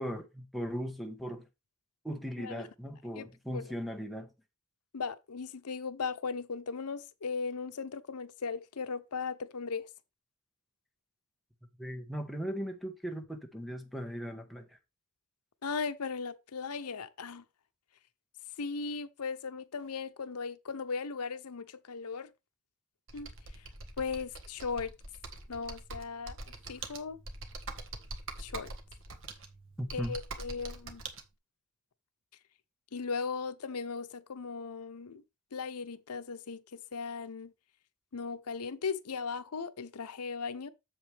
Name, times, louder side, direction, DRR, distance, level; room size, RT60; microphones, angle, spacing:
voice 1, 0.0-1.4 2.0-4.3 11.8-14.6 29.8-30.2, equal, ahead, 1.3 m, -38 dB
voice 2, 4.9-9.9 15.6-17.4 18.6-22.3 23.1-23.3 24.0-24.9 25.5-26.4 26.7-27.2 28.4-28.7 29.9-31.0 32.9-35.2 35.5-37.5 38.1-40.7, left 5 dB, 85° left, 0.8 m, -37 dB
Computer keyboard, 23.1-31.2, right 3 dB, 60° right, 1.6 m, -44 dB
7.9 x 7.3 x 3.4 m
head